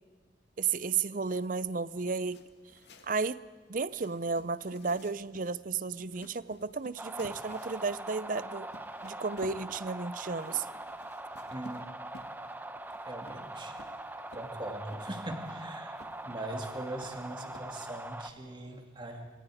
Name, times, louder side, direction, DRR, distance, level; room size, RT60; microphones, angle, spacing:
voice 1, 0.6-2.4 3.0-3.4 3.7-8.7 9.0-10.7, right 4 dB, 45° right, 17 dB, 0.6 m, -33 dB
sound 1, 1.1-18.1, left 1 dB, 65° left, 2.2 m, -56 dB
sound 2, 7.0-18.3, right 1 dB, 10° right, 0.8 m, -42 dB
voice 2, 11.5-11.9 13.1-13.7 14.3-16.0 16.2-19.3, right 1 dB, 25° right, 3 dB, 2.4 m, -41 dB
28.5 x 25.5 x 5.0 m, 1.5 s
head